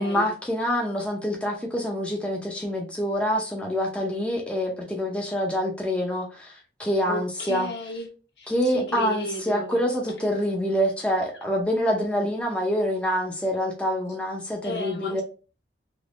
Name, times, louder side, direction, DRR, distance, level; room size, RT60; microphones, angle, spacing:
voice 1, 0.0-7.7 8.5-15.2, equal, 5° left, 0.6 m, -26 dB
voice 2, 7.1-8.1 8.4-9.8 14.6-15.2, left 1 dB, 70° left, 1.1 m, -33 dB
3.5 x 3.0 x 2.5 m
head